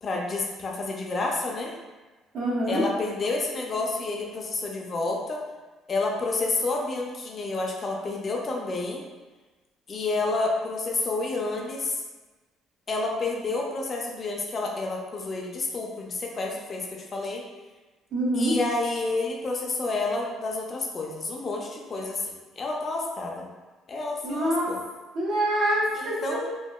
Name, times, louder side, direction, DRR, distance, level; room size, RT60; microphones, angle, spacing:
voice 1, 0.0-1.7 2.7-5.4 5.9-9.0 9.9-12.0 12.9-17.4 18.3-23.5 23.9-24.8 25.9-26.4, left 3 dB, 30° left, 0 dB, 0.3 m, -29 dB
voice 2, 2.3-2.8 18.1-18.6 24.2-24.7 25.1-26.4, right 1 dB, 55° right, -4 dB, 0.7 m, -25 dB
2.7 x 2.4 x 2.2 m, 1.2 s
cardioid pair, 140°, 0 cm